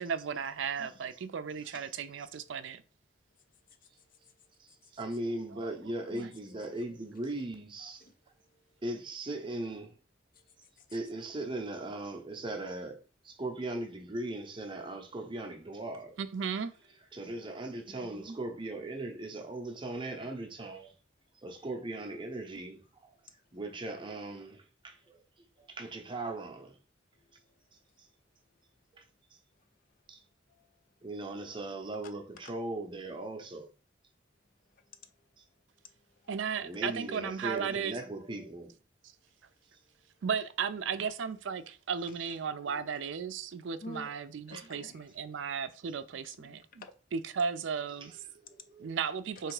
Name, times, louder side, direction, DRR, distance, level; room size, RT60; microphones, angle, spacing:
voice 1, 0.0-2.8 5.6-5.7 16.2-16.7 36.3-38.0 40.2-46.8 47.1-48.1 48.8-49.5, right 6 dB, 75° right, 0.4 m, -35 dB
voice 2, 3.5-5.0 6.1-7.2 8.0-8.8 10.3-10.9 25.6-25.7 27.1-27.6 29.6-29.7 30.5-31.1 34.7-35.3 35.8-36.3 43.8-44.2 44.5-45.2 46.2-46.9 48.6-48.7, left 2 dB, 45° left, 0.5 m, -53 dB
voice 3, 4.6-8.1 8.8-10.0 10.9-16.2 17.1-20.9 21.3-26.8 27.3-27.4 27.7-28.1 28.9-29.1 30.1-30.2 31.0-33.7 36.6-38.7 42.7-42.8 44.5-44.7 48.0-48.9, right 2 dB, 25° right, 0.6 m, -39 dB
3.4 x 3.0 x 4.8 m
head